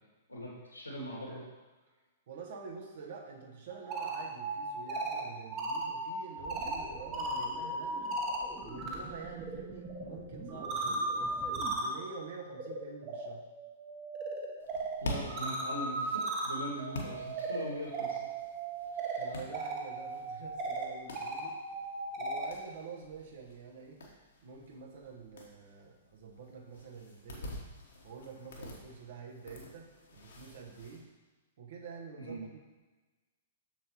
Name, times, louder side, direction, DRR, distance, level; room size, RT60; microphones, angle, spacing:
voice 1, 0.3-1.4 15.0-18.2 18.9-19.2 32.2-32.5, equal, 85° left, -4 dB, 2.5 m, -41 dB
voice 2, 2.3-8.1 8.6-13.4 19.2-21.5 22.2-24.0 24.4-27.5 28.0-31.0 31.6-32.6, right 5 dB, 55° right, -1 dB, 1.2 m, -47 dB
sound 1, 3.7-9.0 9.3-22.5, right 2 dB, 30° right, 1.3 m, -37 dB
sound 2, 6.4-11.7, right 2 dB, 15° right, 1.2 m, -48 dB
sound 3, 14.6-31.0, left 1 dB, 65° left, 1.4 m, -48 dB
7.3 x 6.8 x 3.1 m, 1.2 s
figure-of-eight pair, 110°, 0 cm